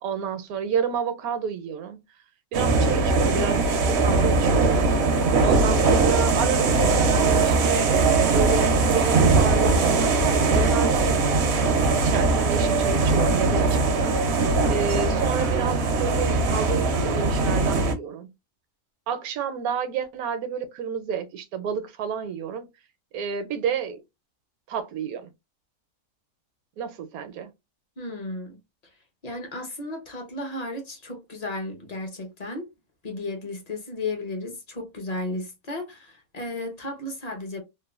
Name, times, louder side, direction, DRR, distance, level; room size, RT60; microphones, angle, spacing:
voice 1, 0.0-2.0 2.5-4.8 5.4-11.6 11.8-14.2 14.7-18.3 19.1-22.7 23.1-24.0 24.7-25.3 26.8-27.5, right 7 dB, 80° right, 1.1 m, -30 dB
sound 1, 2.5-17.9, right 3 dB, 65° right, 0.7 m, -21 dB
voice 2, 28.0-28.6 29.2-32.7 33.0-37.6, left 2 dB, 45° left, 0.5 m, -34 dB
3.0 x 2.1 x 2.3 m
omnidirectional pair, 1.5 m